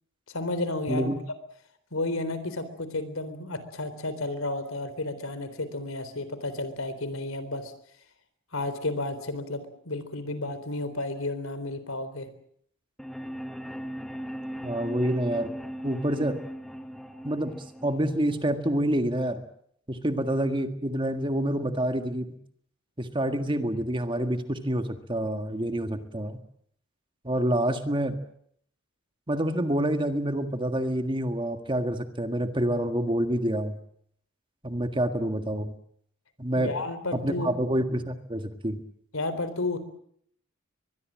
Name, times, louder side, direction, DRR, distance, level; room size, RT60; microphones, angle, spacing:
voice 1, 0.3-1.1 1.9-7.7 8.5-12.3 36.6-37.5 39.1-39.8, left 2 dB, 85° left, 12 dB, 3.8 m, -32 dB
voice 2, 0.9-1.2 14.6-15.5 15.8-16.4 17.2-17.5 17.8-19.4 19.9-22.3 23.0-26.4 27.2-28.2 29.3-33.8 34.6-35.7 36.4-36.7 37.2-38.8, right 1 dB, 25° right, 7 dB, 1.7 m, -27 dB
sound 1, 13.0-19.0, equal, ahead, 1.4 m, -39 dB
23.5 x 21.5 x 7.6 m, 0.67 s
head